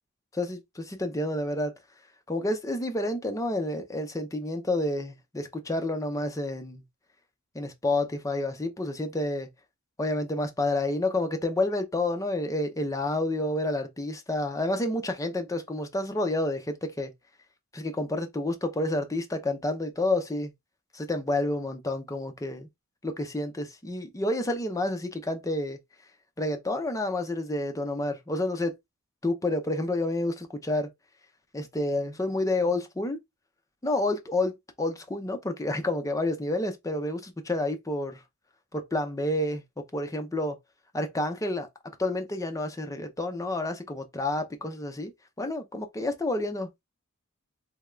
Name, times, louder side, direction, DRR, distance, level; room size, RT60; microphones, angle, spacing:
voice 1, 0.3-1.7 2.3-6.8 7.5-9.5 10.0-17.1 17.7-20.5 20.9-22.7 23.0-25.8 26.4-28.8 29.2-30.9 31.5-33.2 33.8-38.2 38.7-40.6 40.9-41.7 42.0-45.1 45.4-46.8, left 2 dB, 15° left, 0.5 m, -29 dB
3.5 x 2.2 x 3.1 m
head